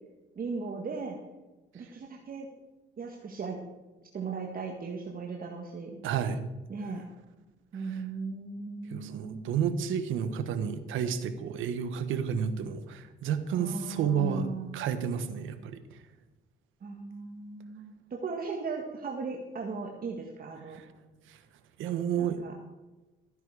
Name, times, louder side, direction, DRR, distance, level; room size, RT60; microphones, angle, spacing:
voice 1, 0.4-1.2 1.7-2.5 3.0-3.6 4.1-6.0 6.7-7.0 7.7-9.4 13.5-14.8 16.8-20.8 22.2-22.5, right 4 dB, 45° right, 1 dB, 1.8 m, -37 dB
voice 2, 6.0-6.4 7.9-8.0 8.9-14.5 14.7-16.0 20.7-20.8 21.3-21.4 21.8-22.4, right 8 dB, 85° right, 9 dB, 1.2 m, -31 dB
14.0 x 9.8 x 4.9 m, 1.1 s
cardioid pair, 90°, 20 cm